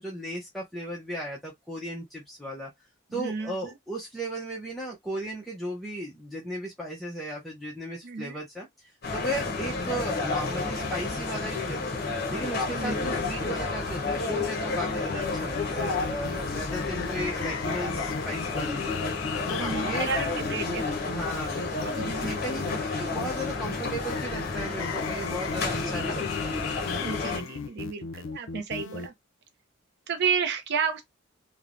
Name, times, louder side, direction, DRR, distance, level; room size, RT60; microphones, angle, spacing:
voice 1, 0.0-2.7 3.1-12.0 12.3-19.1 19.5-20.1 21.1-26.6, right 1 dB, ahead, 0.6 m, -36 dB
voice 2, 3.1-3.5 8.0-8.4 12.7-13.1 19.6-20.9 22.0-22.4 27.0-29.1 30.1-31.0, right 6 dB, 55° right, 0.5 m, -31 dB
sound 1, 9.0-27.4, left 3 dB, 50° left, 0.8 m, -31 dB
sound 2, 15.0-29.1, left 5 dB, 70° left, 0.4 m, -36 dB
3.1 x 2.1 x 2.5 m
head